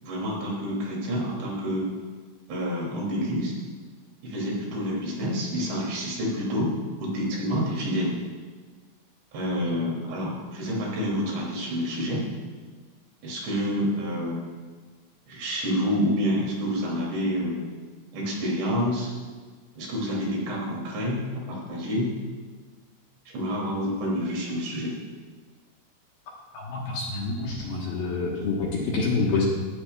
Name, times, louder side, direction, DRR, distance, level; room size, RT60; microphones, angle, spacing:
voice 1, 0.0-1.9 2.5-3.5 4.2-6.7 7.0-8.1 9.3-12.3 13.2-14.5 15.3-17.7 18.1-19.1 19.8-22.1 23.3-24.9, equal, 65° right, -3 dB, 4.8 m, -28 dB
voice 2, 26.5-29.4, left 4 dB, 65° left, -3 dB, 2.7 m, -27 dB
18.5 x 13.0 x 2.3 m, 1.5 s
omnidirectional pair, 5.6 m